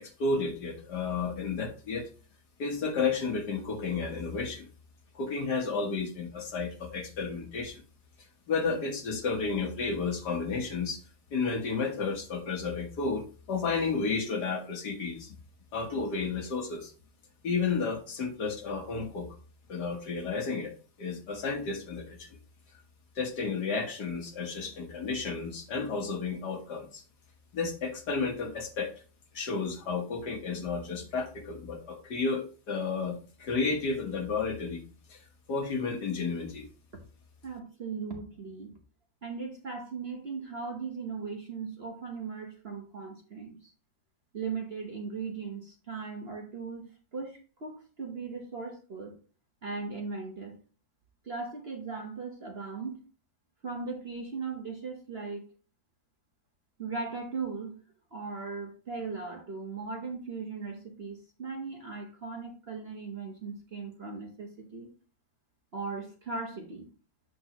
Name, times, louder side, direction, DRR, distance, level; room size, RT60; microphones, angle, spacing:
voice 1, 0.0-2.1 2.6-4.7 5.1-7.8 8.5-11.0 11.3-15.3 15.7-16.9 17.4-19.3 19.7-20.7 21.0-22.4 23.1-27.0 27.5-28.9 29.3-34.8 35.1-36.7, left 4 dB, 65° left, 3 dB, 1.8 m, -32 dB
voice 2, 37.4-38.7 39.2-43.7 44.3-46.9 47.1-49.1 49.6-50.6 51.2-53.0 53.6-55.5 56.8-57.7 58.1-64.9 65.7-66.9, right 4 dB, 40° right, 1 dB, 1.2 m, -38 dB
8.1 x 6.2 x 2.9 m, 0.38 s
omnidirectional pair, 2.0 m